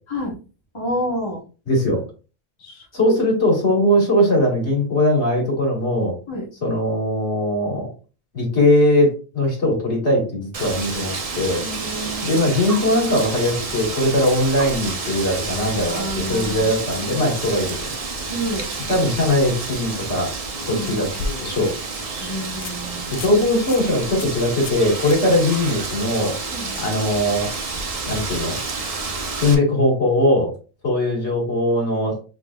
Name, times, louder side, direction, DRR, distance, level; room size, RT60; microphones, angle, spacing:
voice 1, 0.7-1.4 2.6-3.1 6.3-6.4 11.5-12.4 15.9-16.7 18.3-18.6 20.7-21.1 22.2-23.1 26.5-26.7, equal, 25° left, -2 dB, 1.1 m, -28 dB
voice 2, 1.7-2.0 2.9-6.1 6.6-7.9 8.3-11.6 12.2-17.9 18.9-20.3 20.7-21.1 21.4-21.7 23.1-26.3 26.8-27.5 28.1-28.6 29.3-30.5 30.8-32.1, left 1 dB, 55° left, -2 dB, 2.2 m, -20 dB
Wind, 10.5-29.5, right 3 dB, 35° right, 0.6 m, -29 dB
sound 1, 18.7-19.1 20.5-21.8 22.2-22.3 22.6-22.8 23.1-23.4 23.7-23.8 24.2-24.4 24.6-24.8 25.1-25.2 28.3-28.4, left 3 dB, 75° left, 1.0 m, -33 dB
5.7 x 3.5 x 2.4 m, 0.35 s
omnidirectional pair, 1.4 m